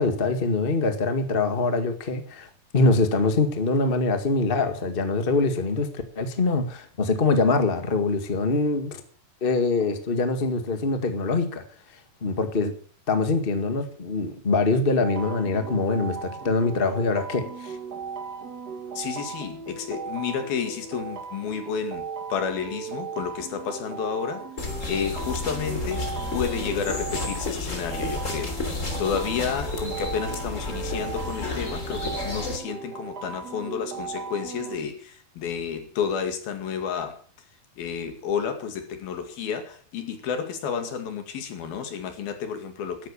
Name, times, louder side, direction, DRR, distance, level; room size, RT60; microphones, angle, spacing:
voice 1, 0.0-2.5 2.7-5.9 6.1-9.0 9.4-11.6 12.2-12.7 13.1-17.8, left 3 dB, 40° left, 0.7 m, -24 dB
sound 1, 15.0-34.8, right 5 dB, 55° right, 1.0 m, -37 dB
voice 2, 19.0-24.4 24.9-37.2 37.8-43.1, left 7 dB, 70° left, 4.0 m, -31 dB
sound 2, 24.6-32.6, left 2 dB, 20° left, 3.0 m, -31 dB
13.5 x 12.0 x 7.1 m
omnidirectional pair, 4.6 m